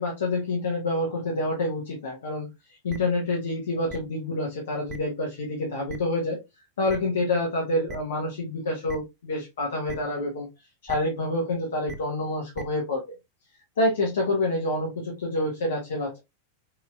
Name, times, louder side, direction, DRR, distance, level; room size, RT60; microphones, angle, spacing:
voice 1, 0.0-6.4 6.8-10.5 10.8-13.0 13.8-16.2, left 2 dB, 65° left, -1 dB, 1.1 m, -27 dB
sound 1, 2.9-3.0 3.9-4.0 4.9-5.0 5.9-6.0 6.9-7.0 7.9-8.0 8.9-9.0 9.9-10.0 10.9-11.0 11.9-12.0 12.5-12.6, right 3 dB, 20° right, 0.6 m, -38 dB
4.8 x 2.9 x 2.4 m, 0.22 s
figure-of-eight pair, 90°, 0 cm